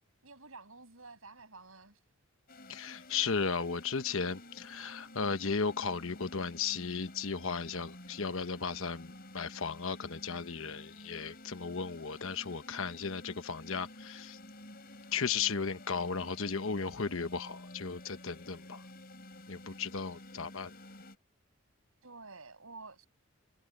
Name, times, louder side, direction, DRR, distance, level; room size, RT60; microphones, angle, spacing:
voice 1, 0.2-2.0 22.0-23.1, right 3 dB, 70° right, 7.6 m, -50 dB
sound 1, 2.5-21.2, left 1 dB, 40° left, 6.0 m, -51 dB
voice 2, 2.7-14.4 15.1-18.8 19.5-20.7, left 5 dB, 65° left, 1.1 m, -35 dB
head